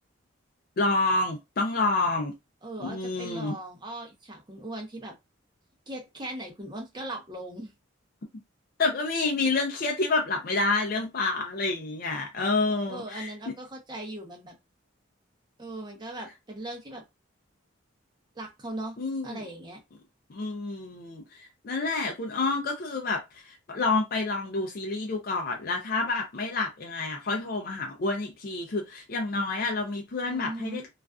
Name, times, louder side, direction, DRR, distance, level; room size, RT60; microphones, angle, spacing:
voice 1, 0.8-2.3 2.8-3.6 8.8-13.3 19.0-19.4 20.3-30.9, left 3 dB, 45° left, 0.4 m, -28 dB
voice 2, 2.6-5.1 5.9-7.7 12.7-14.5 15.6-17.0 18.3-18.9 19.2-19.8 30.3-30.9, right 1 dB, 20° right, 0.6 m, -39 dB
2.4 x 2.3 x 2.3 m
head